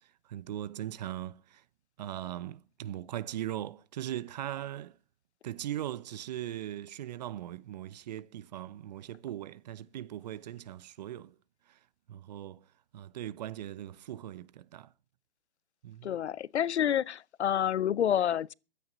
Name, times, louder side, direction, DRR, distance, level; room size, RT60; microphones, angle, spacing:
voice 1, 0.3-1.6 2.0-5.0 5.4-11.3 11.7-11.8 12.1-12.6 12.9-14.9 15.8-16.1, right 12 dB, 40° right, 0.8 m, -39 dB
voice 2, 16.0-18.5, left 10 dB, 75° left, 0.6 m, -28 dB
22.5 x 9.4 x 4.0 m
hypercardioid pair, 145°, 34 cm